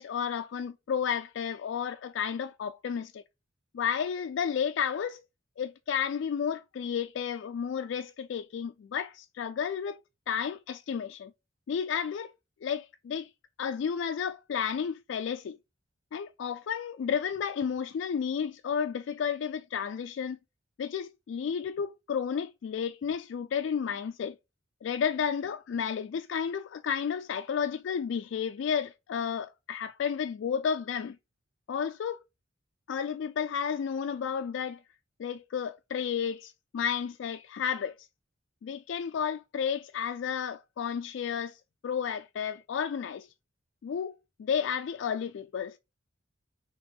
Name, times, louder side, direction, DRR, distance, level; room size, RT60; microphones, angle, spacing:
voice 1, 0.0-3.2 3.7-5.2 5.6-10.0 10.3-11.3 11.7-12.3 12.6-13.3 13.6-15.6 16.1-20.4 20.8-24.4 24.8-31.2 31.7-32.2 32.9-34.8 35.2-38.1 38.6-43.3 43.8-44.1 44.4-45.8, left 7 dB, 65° left, 0.3 m, -32 dB
5.2 x 3.0 x 2.9 m
head